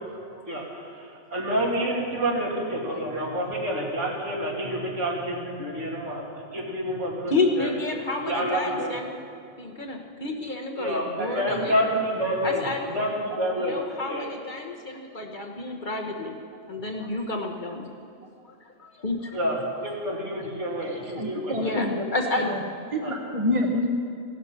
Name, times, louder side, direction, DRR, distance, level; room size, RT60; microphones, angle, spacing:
voice 1, 0.5-6.2 6.5-7.7 8.3-8.9 10.7-12.6 12.9-13.8 14.1-14.2 19.3-21.7 23.0-23.1, equal, 65° right, -3 dB, 3.0 m, -28 dB
voice 2, 7.3-9.2 9.6-11.8 12.4-13.0 13.5-16.4 16.7-17.9 18.4-19.3 20.4-20.5 21.6-22.6, left 2 dB, 40° left, 1 dB, 1.3 m, -30 dB
voice 3, 21.2-22.0 22.4-22.6 22.9-23.9, left 1 dB, 30° right, 3 dB, 0.9 m, -27 dB
17.0 x 12.5 x 5.8 m, 2.3 s
omnidirectional pair, 1.3 m